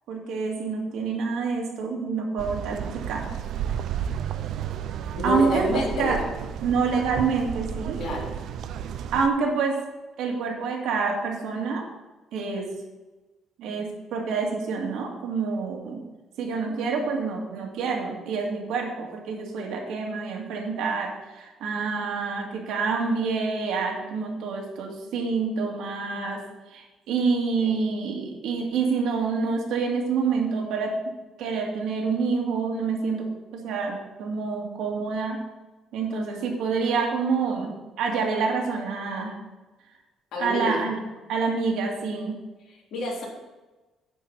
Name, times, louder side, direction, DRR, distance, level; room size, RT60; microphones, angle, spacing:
voice 1, 0.1-3.3 5.2-6.2 6.6-8.0 9.1-9.9 10.2-11.9 12.3-12.8 13.6-16.0 16.4-26.4 26.7-31.1 31.4-35.5 35.9-39.4 40.4-41.0 41.3-42.4, right 4 dB, 85° right, 0 dB, 2.2 m, -27 dB
sound 1, 2.4-9.3, right 9 dB, 65° right, 0.5 m, -32 dB
voice 2, 5.1-6.4 8.0-8.3 27.6-27.7 40.3-40.8 42.7-43.2, left 1 dB, 70° left, -3 dB, 3.5 m, -28 dB
10.0 x 4.8 x 7.3 m, 1.2 s
cardioid pair, 150°, 0 cm